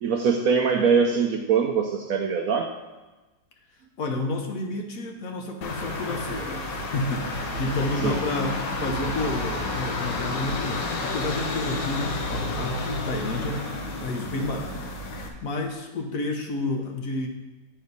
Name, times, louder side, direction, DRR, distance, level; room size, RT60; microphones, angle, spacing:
voice 1, 0.0-2.7 8.0-8.2, right 6 dB, 70° right, 3 dB, 0.9 m, -22 dB
voice 2, 4.0-13.7 14.0-14.8 15.1-17.3, left 2 dB, 55° left, 2 dB, 1.2 m, -30 dB
sound 1, 5.6-15.3, left 2 dB, 80° left, 1.7 m, -30 dB
9.5 x 4.4 x 5.3 m, 1.1 s
omnidirectional pair, 1.9 m